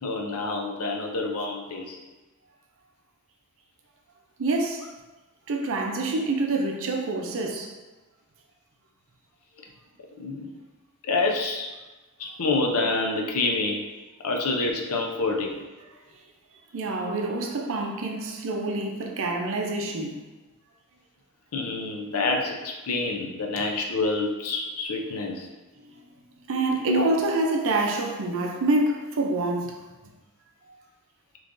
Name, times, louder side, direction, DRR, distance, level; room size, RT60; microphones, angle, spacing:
voice 1, 0.0-2.0 10.2-10.5 11.1-11.7 12.2-13.8 14.2-15.6 17.1-17.2 21.5-25.5 26.8-27.2, left 3 dB, 85° left, 0.5 m, -27 dB
voice 2, 4.4-4.9 5.5-7.7 16.7-20.2 25.8-25.9 26.5-29.8, right 2 dB, 65° right, 0.5 m, -27 dB
3.6 x 3.1 x 2.5 m
head